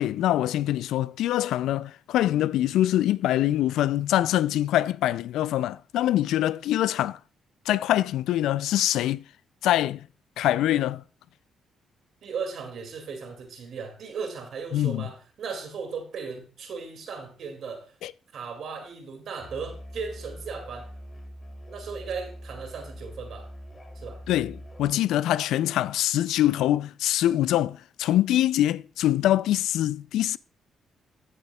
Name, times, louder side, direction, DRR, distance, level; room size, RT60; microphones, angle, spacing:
voice 1, 0.0-7.2 7.7-9.2 9.6-10.0 10.4-11.0 14.7-15.0 18.0-18.1 24.3-30.4, left 13 dB, 85° left, 0.3 m, -24 dB
voice 2, 12.2-17.9 18.3-20.9 21.7-23.5 24.0-24.2, right 5 dB, 65° right, 2.3 m, -36 dB
Musical instrument, 19.4-25.0, equal, 25° left, 2.9 m, -43 dB
15.0 x 6.7 x 2.3 m
cardioid pair, 70°, 0 cm